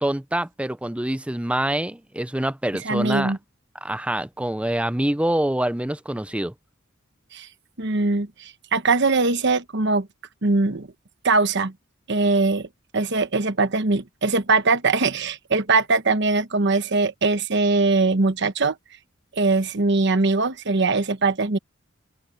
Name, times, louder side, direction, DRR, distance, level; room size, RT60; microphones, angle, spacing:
voice 1, 0.0-3.3 3.8-6.5, right 1 dB, 5° right, 0.5 m, -25 dB
voice 2, 2.8-3.4 7.3-7.5 7.8-10.1 10.4-10.9 11.2-11.7 12.1-12.7 12.9-18.7 19.4-21.6, right 3 dB, 55° right, 1.2 m, -21 dB
head